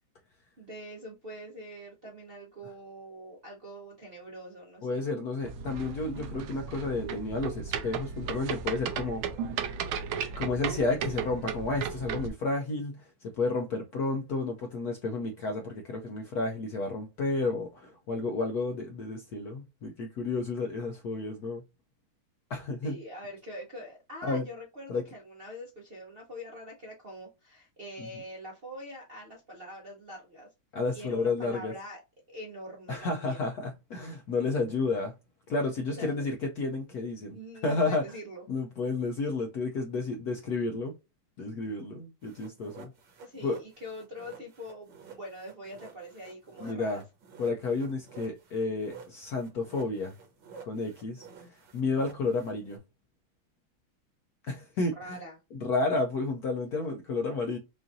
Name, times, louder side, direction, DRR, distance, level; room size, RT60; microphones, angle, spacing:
voice 1, 0.6-5.0 22.8-30.5 30.9-32.0 32.3-33.5 35.9-36.3 37.3-38.4 43.2-47.0 55.0-55.4, equal, 50° right, 0.7 m, -44 dB
voice 2, 4.8-9.2 10.4-21.6 22.5-23.0 24.2-24.4 24.9-25.0 30.7-31.7 32.9-35.1 35.5-37.4 37.6-38.1 38.5-41.0 41.4-42.9 43.4-43.6 46.6-47.0 47.4-50.1 50.6-52.8 54.4-55.2 55.5-57.6, left 3 dB, 70° left, 0.9 m, -31 dB
sound 1, 5.4-12.3, right 7 dB, 85° right, 1.5 m, -35 dB
sound 2, 42.2-52.8, right 6 dB, 65° right, 1.7 m, -51 dB
5.7 x 2.6 x 2.5 m
omnidirectional pair, 2.3 m